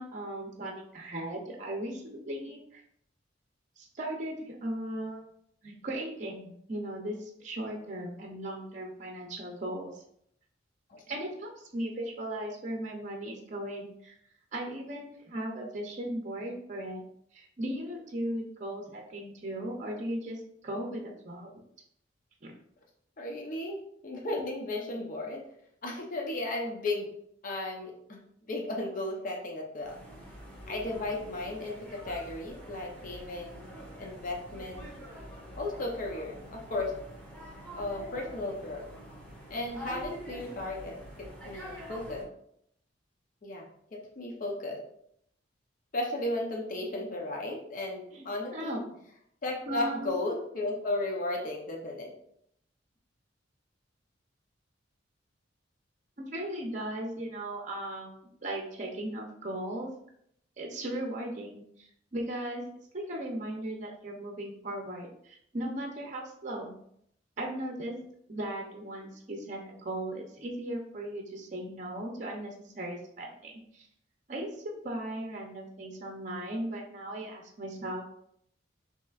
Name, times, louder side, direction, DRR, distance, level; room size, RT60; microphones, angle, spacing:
voice 1, 0.0-2.8 3.8-5.2 5.6-10.0 11.1-14.1 14.5-17.0 17.3-21.5 22.4-22.5 48.1-48.3 48.5-48.8 49.7-50.1 56.2-59.9 60.6-62.6 62.9-66.8 67.4-68.0 68.3-73.9 74.3-78.2, right 1 dB, 40° right, 0 dB, 0.6 m, -37 dB
voice 2, 23.2-25.4 25.8-27.1 27.4-30.0 30.7-33.7 33.9-34.8 35.6-36.9 37.7-38.9 39.5-42.3 43.4-43.7 43.9-44.8 45.9-48.8 49.4-52.1, left 2 dB, 45° left, -1 dB, 0.7 m, -35 dB
sound 1, 29.8-42.2, equal, 10° left, 1.3 m, -46 dB
5.8 x 2.9 x 2.4 m, 0.70 s
head